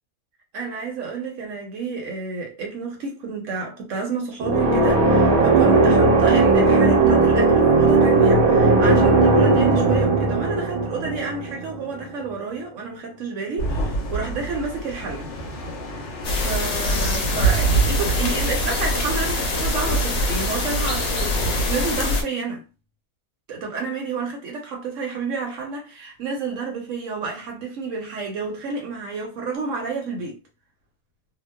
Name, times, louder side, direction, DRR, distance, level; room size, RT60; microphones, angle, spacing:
voice 1, 0.5-15.3 15.9-16.0 16.4-22.6 23.5-30.4, right 4 dB, 65° right, 1.1 m, -30 dB
sound 1, 4.4-12.1, right 3 dB, 80° right, 1.2 m, -17 dB
sound 2, 13.6-22.0, right 4 dB, 60° left, 0.9 m, -27 dB
sound 3, 16.2-22.2, left 2 dB, 90° left, 1.2 m, -24 dB
2.9 x 2.1 x 2.2 m
omnidirectional pair, 1.5 m